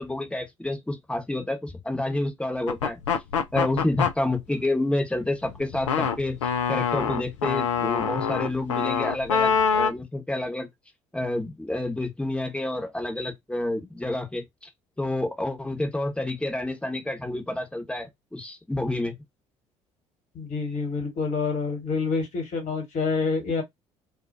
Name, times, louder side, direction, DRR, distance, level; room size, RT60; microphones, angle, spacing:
voice 1, 0.0-3.0 3.5-10.7 11.1-14.7 15.0-19.1, left 1 dB, 5° left, 1.0 m, -29 dB
sound 1, 2.7-4.1 5.3-9.9, left 7 dB, 80° left, 0.4 m, -25 dB
voice 2, 20.3-23.6, left 4 dB, 50° left, 1.3 m, -27 dB
2.4 x 2.3 x 2.4 m
figure-of-eight pair, 55°, 16 cm